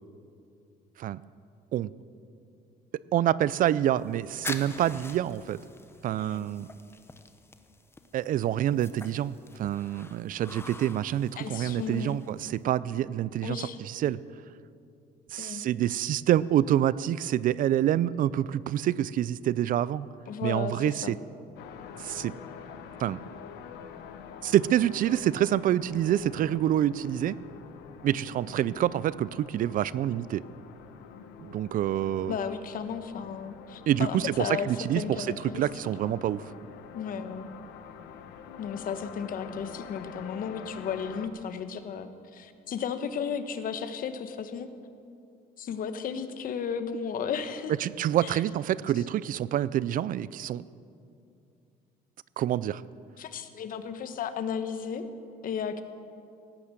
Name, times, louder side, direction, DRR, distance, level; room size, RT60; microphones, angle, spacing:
voice 1, 3.1-5.6 6.0-6.7 8.1-14.2 15.3-20.1 20.4-21.2 22.0-22.3 23.0-23.2 24.4-27.4 28.0-30.4 31.4-32.3 33.9-35.0 35.4-36.5 47.8-50.6 52.4-52.8, right 12 dB, 55° right, 19 dB, 0.4 m, -27 dB
sound 1, 4.0-12.6, left 3 dB, 15° left, 0.9 m, -45 dB
voice 2, 11.4-12.1 13.4-13.8 15.4-15.6 20.3-21.2 32.3-34.7 35.0-35.6 36.0-36.2 36.9-37.6 38.6-44.7 45.6-47.7 48.2-48.4 53.2-55.0 55.4-55.8, left 7 dB, 55° left, 10 dB, 1.1 m, -34 dB
sound 2, 21.6-41.3, left 8 dB, 85° left, 1.1 m, -46 dB
17.5 x 10.0 x 7.5 m, 2.5 s
cardioid pair, 110°, 17 cm